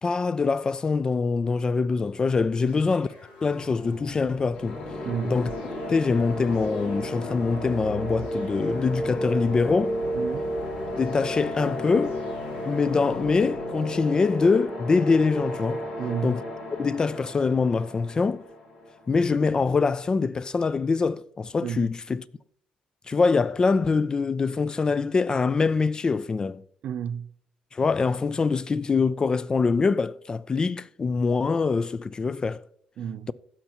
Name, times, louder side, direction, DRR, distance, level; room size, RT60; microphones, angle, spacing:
voice 1, 0.0-3.1 3.4-4.8 5.2-5.5 5.9-10.0 11.0-12.2 12.7-15.8 16.2-16.4 16.7-18.4 19.1-22.2 23.1-26.6 27.7-32.6, left 4 dB, 30° left, 0.3 m, -24 dB
sound 1, 2.7-13.7, right 1 dB, 90° left, 2.2 m, -43 dB
sound 2, 4.5-19.2, equal, 70° left, 2.4 m, -33 dB
voice 2, 5.0-5.4 10.1-10.5 16.0-16.4 21.6-21.9 26.8-27.3 33.0-33.3, right 8 dB, 65° right, 0.5 m, -31 dB
15.5 x 5.8 x 2.9 m
cardioid pair, 90°, 3 cm